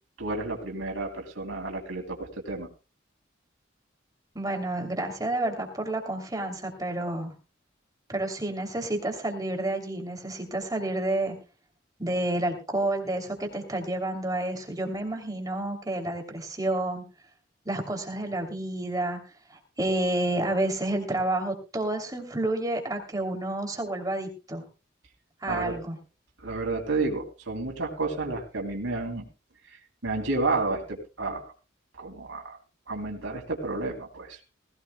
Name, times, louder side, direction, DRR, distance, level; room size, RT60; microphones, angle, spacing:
voice 1, 0.2-2.7 25.5-25.8 26.4-29.3 30.0-31.4 32.0-32.6 32.9-34.4, right 3 dB, 90° right, 3 dB, 3.0 m, -31 dB
voice 2, 4.3-7.3 8.1-11.3 12.0-17.0 17.6-19.2 19.5-24.6 25.4-26.0, right 1 dB, 20° right, 3 dB, 3.0 m, -30 dB
19.5 x 16.5 x 2.2 m, 0.31 s
head